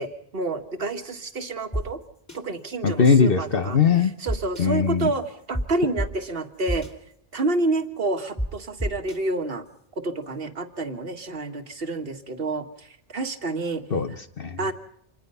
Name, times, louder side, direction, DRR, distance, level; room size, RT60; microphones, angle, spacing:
voice 1, 0.0-2.0 2.3-3.8 4.2-6.9 7.3-9.7 10.0-13.8 14.6-14.7, right 2 dB, 65° right, 7 dB, 1.8 m, -28 dB
On Rd Bruce, 1.7-1.8 2.3-2.4 4.3-4.6 5.5-5.6 6.0-6.1 6.7-6.9 8.4-8.5 8.8-9.2, equal, 15° left, 2.5 m, -27 dB
voice 2, 2.8-4.1 4.6-5.1 13.9-14.7, left 5 dB, 65° left, 9 dB, 1.2 m, -21 dB
27.0 x 20.0 x 5.6 m, 0.71 s
omnidirectional pair, 1.0 m